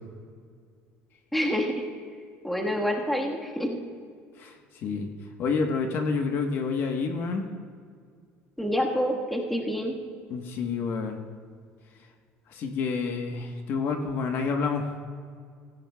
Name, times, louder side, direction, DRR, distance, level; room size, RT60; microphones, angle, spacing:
voice 1, 1.3-1.8 2.4-3.8 8.6-10.0, equal, ahead, 0 dB, 1.5 m, -27 dB
voice 2, 4.4-5.1 5.4-7.4 10.3-11.2 12.5-14.9, left 4 dB, 55° left, 4 dB, 1.2 m, -28 dB
16.5 x 16.0 x 2.3 m, 2.1 s
cardioid pair, 125°, 5 cm